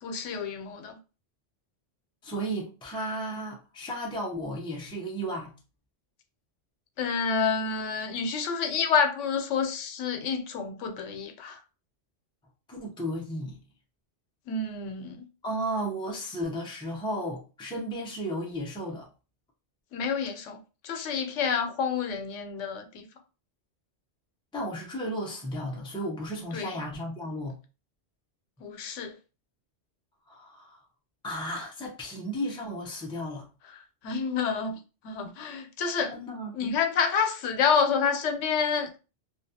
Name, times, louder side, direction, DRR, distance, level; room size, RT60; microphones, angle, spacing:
voice 1, 0.0-1.0 7.0-11.6 14.5-15.2 19.9-20.6 20.8-23.0 26.5-26.8 28.6-29.1 34.0-34.8 35.0-36.1 36.5-39.0, left 6 dB, 90° left, 0.9 m, -28 dB
voice 2, 2.2-5.5 12.7-13.6 15.4-19.1 24.5-27.6 30.3-30.8 31.2-33.5 36.1-36.7, equal, 5° left, 0.5 m, -34 dB
2.3 x 2.2 x 2.7 m
omnidirectional pair, 1.2 m